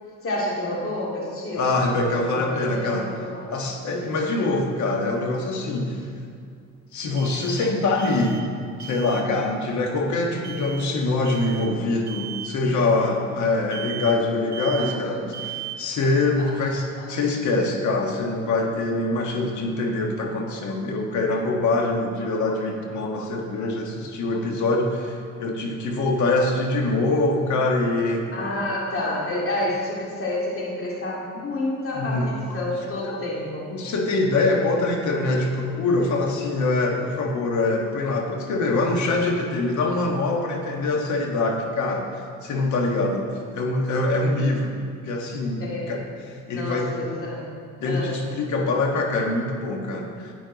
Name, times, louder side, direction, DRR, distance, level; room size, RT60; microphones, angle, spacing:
voice 1, 0.2-3.5 3.9-4.2 12.7-12.8 14.5-15.2 28.3-33.7 45.6-45.9 46.5-47.5 47.8-48.2, left 1 dB, 45° left, -4 dB, 2.5 m, -29 dB
voice 2, 1.5-3.1 3.5-6.0 6.9-8.4 8.8-28.5 31.9-32.6 33.0-33.1 33.7-42.1 42.4-43.3 43.5-44.7 45.1-46.0 46.5-46.9 47.8-50.3, left 2 dB, 70° left, 2 dB, 1.5 m, -24 dB
sound 1, 3.9-4.0 7.2-8.5 8.8-9.3 10.4-10.9 11.2-11.7 12.1-12.6 13.7-14.3 14.5-15.1 15.3-15.9, right 11 dB, 35° right, 0.5 m, -37 dB
10.5 x 8.8 x 4.0 m, 2.3 s
cardioid pair, 90°, 30 cm